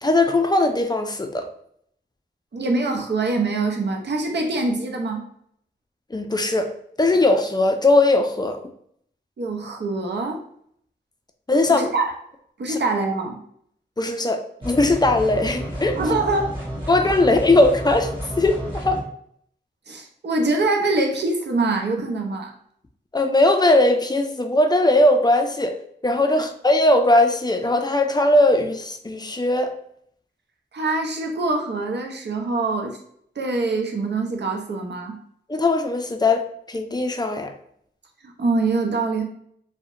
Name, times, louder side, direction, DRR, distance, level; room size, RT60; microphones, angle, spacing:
voice 1, 0.0-1.5 6.1-6.7 7.0-8.6 11.5-11.9 12.7-12.8 14.0-16.0 16.9-19.0 23.1-25.8 26.0-29.7 35.5-37.5, left 2 dB, 20° left, 6 dB, 0.4 m, -19 dB
voice 2, 2.5-5.2 9.4-10.4 11.7-12.1 12.6-13.4 16.0-16.9 17.4-17.5 19.9-22.5 26.3-26.4 30.7-33.0 33.4-35.2 38.2-39.2, right 3 dB, 65° right, 3 dB, 0.5 m, -24 dB
sound 1, 14.6-19.0, equal, 25° right, 1.2 m, -31 dB
2.7 x 2.1 x 2.4 m, 0.66 s
cardioid pair, 50°, 19 cm